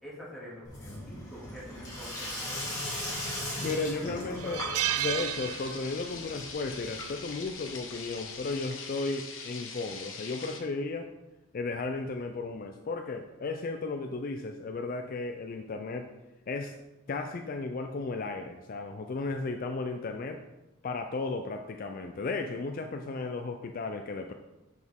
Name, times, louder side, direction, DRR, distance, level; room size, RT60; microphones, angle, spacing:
voice 1, 0.0-2.8, equal, ahead, -8 dB, 2.3 m, -46 dB
Sink (filling or washing), 0.6-7.4, left 1 dB, 15° left, 2.1 m, -38 dB
voice 2, 3.6-4.6 5.0-11.1 11.5-16.1 16.5-16.8 17.1-20.4 20.8-24.3, left 3 dB, 40° left, 5 dB, 0.4 m, -34 dB
sound 1, 4.4-6.2 6.5-6.7 7.9-8.2, right 12 dB, 85° right, 0.3 m, -32 dB
sound 2, 5.1-10.6, left 5 dB, 65° left, 1.1 m, -42 dB
7.0 x 6.2 x 3.5 m, 1.0 s
head